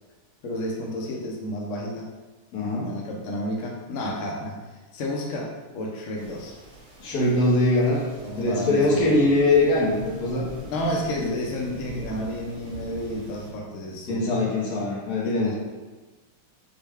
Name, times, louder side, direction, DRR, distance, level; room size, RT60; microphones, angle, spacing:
voice 1, 0.4-2.1 2.8-4.6 4.9-6.5 8.2-9.2 10.7-14.3 15.2-15.5, left 1 dB, 75° left, -2 dB, 0.7 m, -31 dB
voice 2, 2.5-2.9 7.0-8.0 8.4-10.5 11.2-11.3 14.1-15.5, left 2 dB, 55° left, -4 dB, 1.3 m, -22 dB
sound 1, 6.2-13.5, equal, 65° right, 1.9 m, -42 dB
6.4 x 2.2 x 3.4 m, 1.2 s
omnidirectional pair, 2.2 m